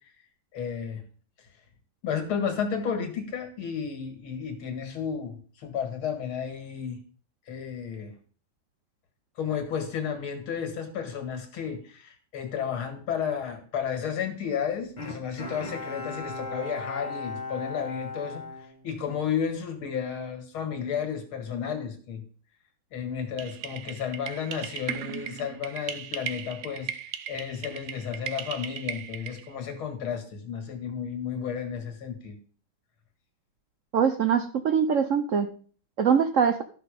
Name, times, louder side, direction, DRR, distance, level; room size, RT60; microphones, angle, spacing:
voice 1, 0.5-1.0 2.0-7.0 7.5-8.1 9.4-22.2 22.9-26.9 27.3-32.4, left 7 dB, 75° left, 6 dB, 2.7 m, -32 dB
Bowed string instrument, 15.0-19.5 19.9-20.0, left 3 dB, 25° left, 1.4 m, -37 dB
sound 1, 23.4-29.5, right 9 dB, 65° right, 1.1 m, -37 dB
voice 2, 33.9-35.5 36.0-36.6, right 7 dB, 85° right, 8 dB, 0.6 m, -23 dB
12.5 x 6.1 x 5.2 m, 0.43 s
omnidirectional pair, 2.3 m